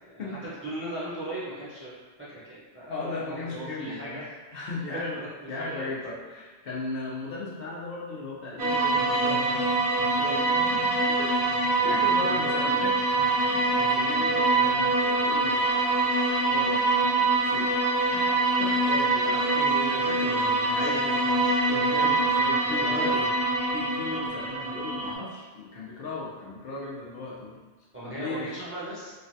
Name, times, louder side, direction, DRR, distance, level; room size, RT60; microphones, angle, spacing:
voice 1, 0.0-1.9 2.3-2.9 3.2-4.3 5.1-5.9 12.8-12.9 19.2-21.6 22.7-23.3 27.9-29.1, right 1 dB, 15° right, -10 dB, 0.6 m, -38 dB
voice 2, 2.9-4.2 4.5-11.3 11.8-12.9 13.4-15.7 16.5-17.1 17.4-17.7 18.1-18.3 18.6-19.5 20.7-21.0 21.7-23.1 23.7-27.6 28.0-28.5, left 3 dB, 65° left, -5 dB, 0.8 m, -36 dB
sound 1, 8.6-25.1, right 2 dB, 70° right, 0.9 m, -24 dB
3.2 x 2.2 x 2.6 m, 1.3 s
omnidirectional pair, 1.1 m